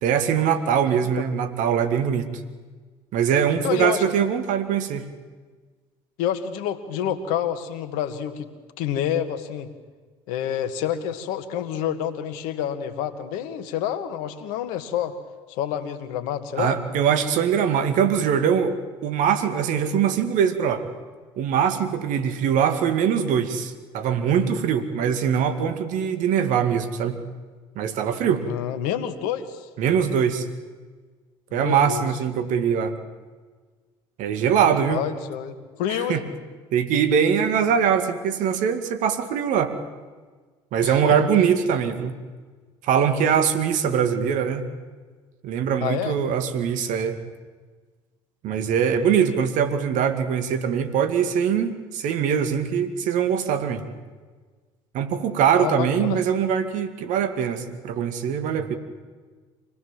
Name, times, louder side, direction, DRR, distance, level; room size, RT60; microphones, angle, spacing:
voice 1, 0.0-2.3 3.1-5.1 16.6-18.7 19.0-20.9 21.4-27.2 27.8-28.4 29.8-30.4 31.5-32.9 34.2-35.0 35.9-36.2 36.7-39.7 40.7-42.2 42.8-44.7 45.4-47.2 48.4-53.8 54.9-58.8, right 8 dB, 65° right, 9 dB, 2.2 m, -22 dB
voice 2, 3.6-4.0 6.2-8.5 8.8-9.7 10.3-15.1 15.5-16.8 28.4-29.7 31.5-32.0 34.9-36.2 40.8-41.2 45.8-46.2 55.5-56.2, left 10 dB, 70° left, 10 dB, 1.9 m, -28 dB
25.5 x 19.0 x 7.5 m, 1.4 s
hypercardioid pair, 65°, 14 cm